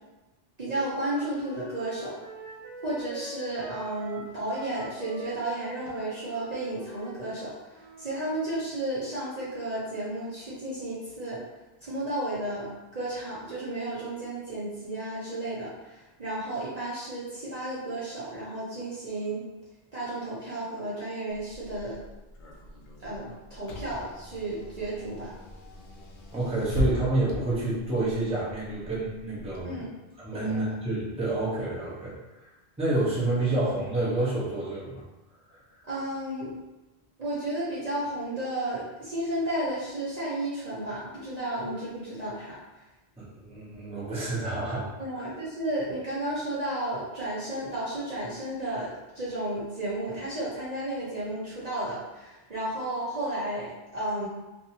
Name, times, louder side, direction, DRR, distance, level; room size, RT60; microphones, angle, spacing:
voice 1, 0.6-2.2 2.8-11.4 11.8-19.4 19.9-22.0 23.0-25.3 29.6-29.9 30.3-30.6 35.8-36.5 37.2-42.6 45.0-54.3, right 1 dB, 45° right, -9 dB, 0.7 m, -33 dB
Wind instrument woodwind instrument, 0.8-8.3, right 1 dB, 60° right, 1.0 m, -44 dB
Car / Engine, 21.3-29.6, left 1 dB, 60° left, 0.6 m, -38 dB
voice 2, 26.3-29.7 30.2-32.1 32.8-35.0 35.5-35.6 43.2-45.3, right 2 dB, 5° right, -8 dB, 0.6 m, -29 dB
2.6 x 2.5 x 2.8 m, 1.1 s
omnidirectional pair, 1.1 m